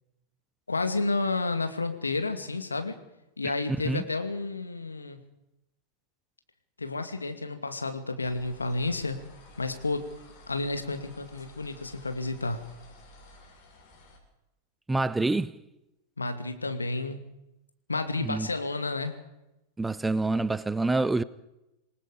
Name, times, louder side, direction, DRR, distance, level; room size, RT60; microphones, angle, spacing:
voice 1, 0.7-3.0 3.4-5.2 6.8-9.2 9.6-10.0 10.5-12.7 16.2-17.2 17.9-19.1, left 3 dB, 80° left, 2.4 m, -31 dB
sound 1, 8.2-14.2, left 1 dB, 45° left, 7.4 m, -53 dB
voice 2, 14.9-15.5 18.2-18.5 19.8-21.2, right 2 dB, 10° right, 0.7 m, -26 dB
27.0 x 19.5 x 5.2 m
figure-of-eight pair, 90°, 0 cm